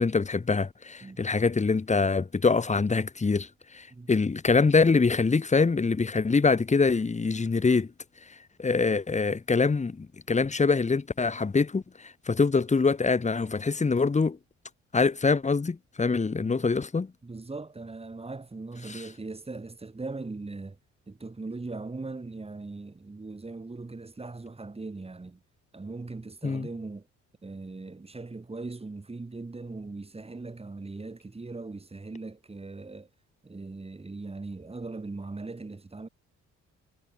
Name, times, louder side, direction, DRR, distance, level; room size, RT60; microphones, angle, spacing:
voice 1, 0.0-3.5 3.7-7.9 8.6-14.4 14.9-17.1 18.9-19.0 26.4-26.7, left 4 dB, 25° left, 1.7 m, -24 dB
voice 2, 17.2-20.8 21.1-25.4 25.7-27.1 27.4-33.1 33.4-36.1, right 3 dB, 20° right, 2.9 m, -39 dB
cardioid pair, 90°, 30 cm